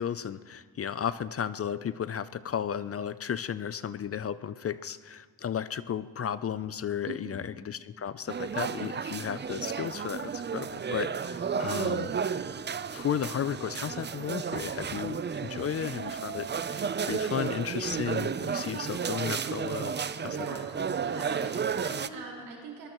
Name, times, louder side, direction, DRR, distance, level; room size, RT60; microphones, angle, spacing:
voice 1, 0.0-12.1 12.9-20.0 20.2-20.4, left 8 dB, 35° left, 15 dB, 0.5 m, -34 dB
voice 2, 7.1-7.5 20.2-20.6 21.0-22.9, right 4 dB, 80° right, -1 dB, 4.8 m, -41 dB
sound 1, 8.3-22.1, right 6 dB, 25° right, 0.5 m, -33 dB
22.0 x 19.5 x 3.0 m, 1.5 s
cardioid pair, 85°, 40 cm